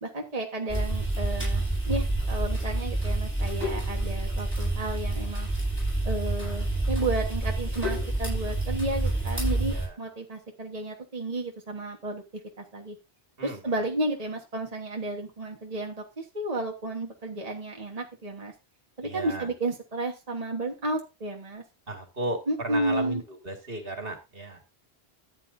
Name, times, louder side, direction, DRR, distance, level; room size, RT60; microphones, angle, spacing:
voice 1, 0.0-5.5 6.0-12.2 12.6-12.9 13.4-18.5 19.0-21.6 22.5-23.2, right 2 dB, 35° right, 1 dB, 1.5 m, -32 dB
sound 1, 0.7-9.9, right 2 dB, 10° left, 7.9 m, -28 dB
voice 2, 19.0-19.4 21.9-22.4 22.6-23.2 23.5-24.6, right 2 dB, 60° right, 4 dB, 2.2 m, -34 dB
14.0 x 9.0 x 2.6 m, 0.26 s
omnidirectional pair, 1.1 m